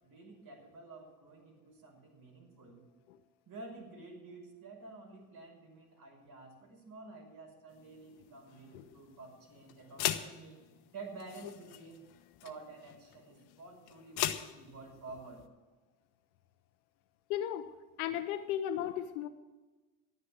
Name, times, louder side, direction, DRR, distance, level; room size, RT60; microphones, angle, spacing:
voice 1, 0.0-2.8 3.5-10.6 10.9-12.1 12.4-15.4, right 3 dB, 55° right, 1 dB, 5.8 m, -50 dB
sound 1, 7.7-15.4, left 13 dB, 65° left, 1.1 m, -41 dB
voice 2, 17.3-17.7 18.0-19.3, left 11 dB, 90° left, 8 dB, 0.8 m, -35 dB
12.0 x 9.8 x 7.6 m, 1.2 s
supercardioid pair, 80°, 42 cm